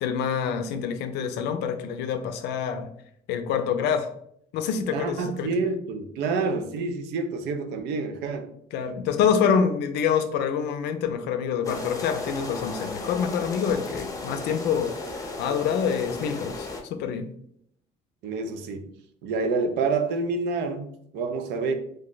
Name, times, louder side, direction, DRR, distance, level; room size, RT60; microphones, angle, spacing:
voice 1, 0.0-2.9 3.3-4.1 4.5-5.5 8.7-17.3, left 7 dB, 85° left, 0.4 m, -26 dB
voice 2, 4.9-8.5 18.2-18.9 19.2-20.9 21.1-21.7, right 4 dB, 85° right, 0.4 m, -28 dB
sound 1, 11.6-16.8, left 3 dB, 20° left, 0.6 m, -35 dB
2.6 x 2.1 x 3.7 m
cardioid pair, 110°, 17 cm